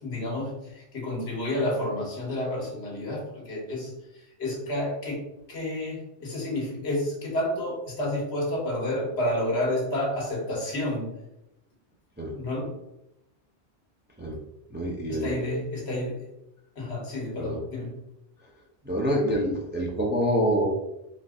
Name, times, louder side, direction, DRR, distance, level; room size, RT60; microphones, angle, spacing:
voice 1, 0.0-5.2 5.5-11.2 12.4-12.7 15.1-16.3 16.7-18.0, left 1 dB, 70° left, -2 dB, 1.5 m, -30 dB
voice 2, 14.7-15.4 17.4-17.6 18.8-20.7, equal, 10° right, -1 dB, 0.5 m, -26 dB
4.3 x 2.6 x 3.7 m, 0.86 s
omnidirectional pair, 1.1 m